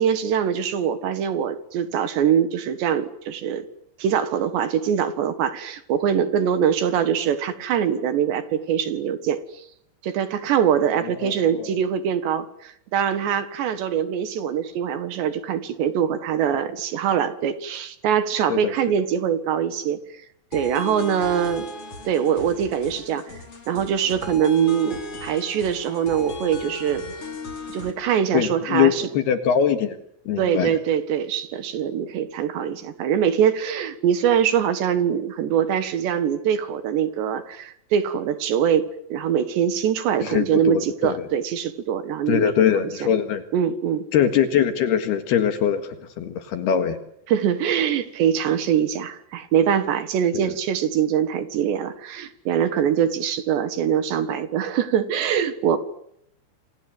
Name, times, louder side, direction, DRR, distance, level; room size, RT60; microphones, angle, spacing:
voice 1, 0.0-3.6 4.0-9.4 10.0-20.0 20.5-21.7 22.0-23.4 23.7-27.0 27.7-29.1 30.4-42.5 43.5-44.0 47.3-55.8, right 8 dB, 65° right, 12 dB, 3.5 m, -23 dB
voice 2, 10.8-11.7 18.5-18.7 28.3-30.0 30.3-30.8 40.2-41.2 42.3-43.4 44.1-47.0 50.4-50.5, left 9 dB, 60° left, 9 dB, 3.3 m, -22 dB
sound 1, 20.5-27.9, left 3 dB, 30° left, 4.6 m, -36 dB
27.5 x 27.5 x 7.9 m, 0.72 s
omnidirectional pair, 5.8 m